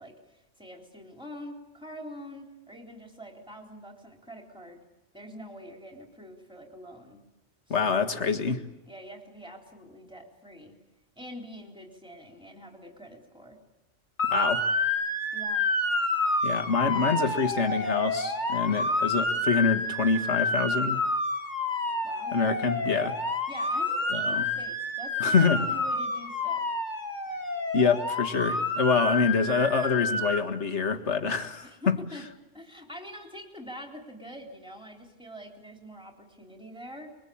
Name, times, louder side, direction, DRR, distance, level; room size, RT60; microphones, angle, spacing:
voice 1, 0.0-4.8 5.1-7.2 7.7-7.9 8.9-10.7 11.2-13.6 15.3-15.7 22.0-22.4 23.5-26.7 31.6-32.2 32.5-37.1, equal, 5° right, 2 dB, 3.8 m, -45 dB
voice 2, 7.7-8.6 14.3-14.6 16.4-21.0 22.3-23.2 24.1-24.5 25.2-25.6 27.7-32.0, left 5 dB, 65° left, 6 dB, 2.0 m, -26 dB
Motor vehicle (road) / Siren, 14.2-30.4, left 2 dB, 35° left, 2.3 m, -29 dB
26.5 x 23.0 x 8.7 m, 0.99 s
omnidirectional pair, 1.3 m